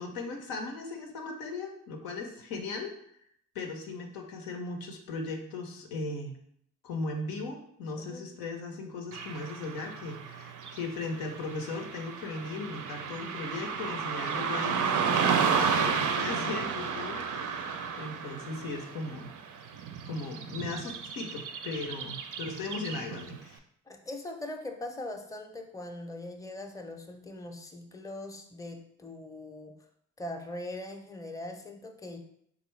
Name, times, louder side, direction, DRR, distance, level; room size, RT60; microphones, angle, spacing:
voice 1, 0.0-2.9 3.5-6.4 6.8-19.3 20.1-23.6, left 3 dB, 90° left, 2 dB, 0.6 m, -37 dB
Car passing by / Traffic noise roadway noise, 9.1-23.4, right 6 dB, 55° right, 0.5 m, -32 dB
voice 2, 23.9-29.8 30.2-32.2, left 1 dB, 10° left, 4 dB, 0.5 m, -41 dB
3.5 x 2.4 x 3.1 m, 0.69 s
supercardioid pair, 40°, 37 cm